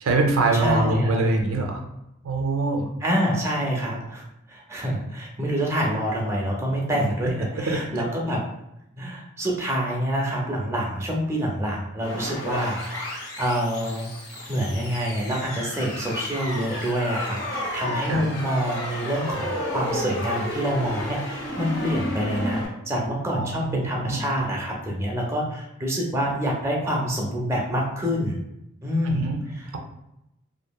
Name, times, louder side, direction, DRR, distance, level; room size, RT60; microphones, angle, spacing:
voice 1, 0.0-1.8 2.2-2.9 7.6-7.8 18.1-18.2 23.3-24.2 29.0-29.4, right 3 dB, 90° right, 3 dB, 0.5 m, -24 dB
voice 2, 0.5-1.3 3.0-4.2 4.5-8.4 9.0-14.1 14.5-22.6 22.9-28.4 28.8-29.8, equal, 15° right, -2 dB, 0.5 m, -27 dB
Computer drop, 12.0-22.7, left 1 dB, 85° left, 1.1 m, -32 dB
2.8 x 2.5 x 2.2 m, 0.86 s
head